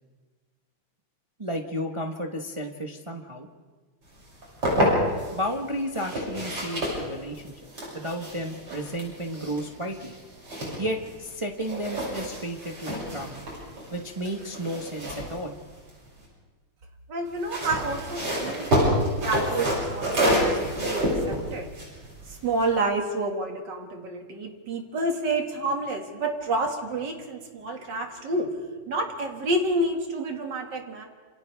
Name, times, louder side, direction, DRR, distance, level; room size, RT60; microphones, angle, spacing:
voice 1, 1.4-3.5 4.8-4.9 5.3-7.5 7.9-10.1 10.8-13.4 13.9-15.6, equal, 20° right, 2 dB, 0.8 m, -32 dB
sound 1, 4.2-5.4 5.9-11.3 11.6-16.3 17.3-22.8, equal, 80° right, 7.7 m, -28 dB
voice 2, 17.1-21.7 22.3-28.5 28.9-31.1, right 2 dB, 55° right, 2 dB, 2.7 m, -29 dB
27.5 x 27.5 x 3.5 m, 1.4 s
omnidirectional pair, 2.4 m